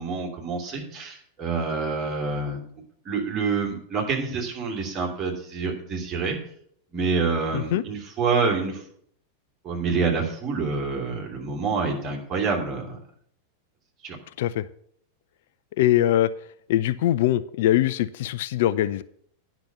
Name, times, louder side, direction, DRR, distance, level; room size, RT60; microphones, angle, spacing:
voice 1, 0.0-2.6 3.0-6.4 6.9-8.8 9.6-13.0 14.0-14.2, right 4 dB, 25° right, -1 dB, 2.8 m, -27 dB
voice 2, 7.5-7.8 14.4-14.6 15.8-16.3 16.7-19.0, left 13 dB, 55° left, 15 dB, 0.3 m, -22 dB
10.0 x 6.0 x 6.8 m, 0.65 s
figure-of-eight pair, 90°, 0 cm